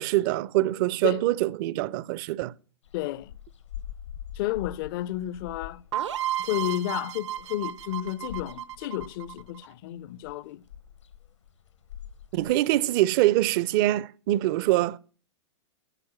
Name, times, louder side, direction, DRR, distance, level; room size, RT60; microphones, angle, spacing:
voice 1, 0.0-2.5 12.3-15.0, right 16 dB, 45° right, 0.5 m, -24 dB
sound 1, 2.8-12.6, left 10 dB, 75° left, 1.0 m, -44 dB
voice 2, 2.9-3.3 4.4-5.8 6.4-10.6, left 14 dB, 45° left, 0.5 m, -31 dB
sound 2, 5.9-9.7, right 12 dB, 75° right, 0.8 m, -33 dB
12.0 x 4.5 x 7.4 m
figure-of-eight pair, 105°, 16 cm